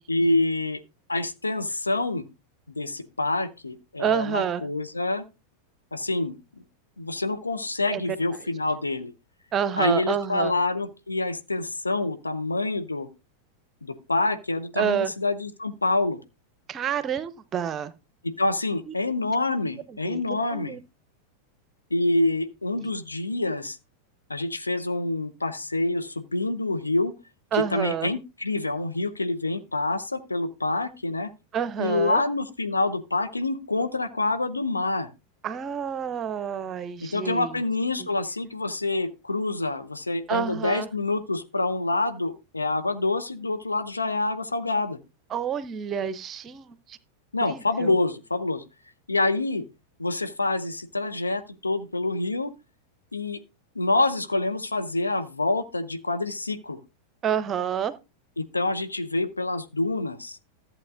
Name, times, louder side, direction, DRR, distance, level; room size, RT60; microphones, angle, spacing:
voice 1, 0.1-0.8 1.1-2.2 2.7-5.2 5.9-6.6 7.0-9.1 9.8-13.1 13.8-16.2 18.2-20.7 21.9-23.8 24.3-27.1 27.7-31.3 31.8-35.1 37.0-45.0 47.3-48.6 49.1-49.6 50.0-52.5 53.1-53.4 53.7-56.8 58.4-60.4, left 2 dB, 80° left, 0.8 m, -27 dB
voice 2, 4.0-4.6 7.9-8.0 8.3-8.5 9.5-10.5 14.8-15.1 16.7-17.9 18.9-19.0 19.9-20.8 27.5-28.1 31.5-32.2 35.4-37.6 38.0-38.1 40.3-40.9 45.3-47.0 47.5-47.9 57.2-57.9, right 8 dB, 25° right, 0.7 m, -28 dB
14.0 x 7.8 x 2.5 m
figure-of-eight pair, 90°, 0 cm